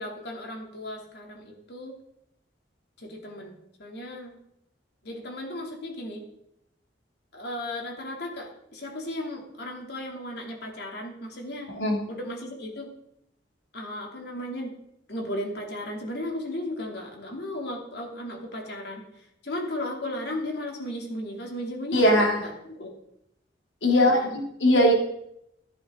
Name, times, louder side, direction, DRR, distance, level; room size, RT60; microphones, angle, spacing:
voice 1, 0.0-2.0 3.0-4.4 5.0-6.2 7.3-11.7 12.1-12.9 13.7-14.8 15.1-19.0 19.4-22.9 23.9-24.4, left 1 dB, 60° left, 1 dB, 2.9 m, -35 dB
voice 2, 11.7-12.0 21.9-22.4 23.8-24.2 24.6-24.9, left 1 dB, 85° left, 0 dB, 2.7 m, -19 dB
14.0 x 11.0 x 3.8 m, 0.78 s
head